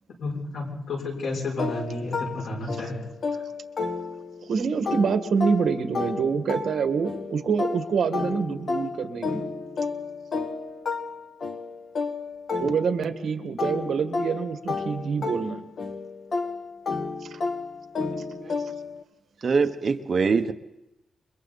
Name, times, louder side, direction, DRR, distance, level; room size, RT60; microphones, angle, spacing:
voice 1, 0.2-3.0 3.3-3.4 13.0-13.1, left 2 dB, 90° left, -1 dB, 6.6 m, -32 dB
sound 1, 1.6-4.5 4.9-13.2 13.6-19.0, left 4 dB, 50° left, 2.1 m, -32 dB
voice 2, 4.5-9.4 12.6-15.6 17.2-17.4, right 5 dB, 65° right, 8 dB, 1.8 m, -26 dB
voice 3, 19.4-20.5, right 5 dB, 40° right, 7 dB, 1.2 m, -23 dB
29.0 x 23.5 x 4.2 m, 0.91 s
wide cardioid pair, 155°, 0 cm